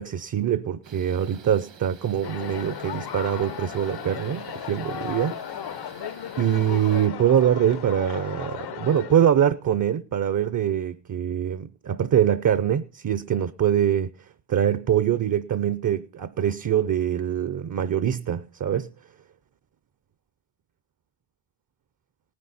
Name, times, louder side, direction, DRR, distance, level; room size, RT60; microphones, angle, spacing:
voice 1, 0.0-5.4 6.4-14.1 14.5-18.9, right 9 dB, 45° right, 0.6 m, -24 dB
Camping Stove, 0.8-7.1, right 6 dB, 75° right, 1.8 m, -48 dB
sound 1, 2.2-9.3, left 9 dB, 60° left, 0.7 m, -36 dB
18.5 x 9.9 x 4.1 m
wide cardioid pair, 125°, 44 cm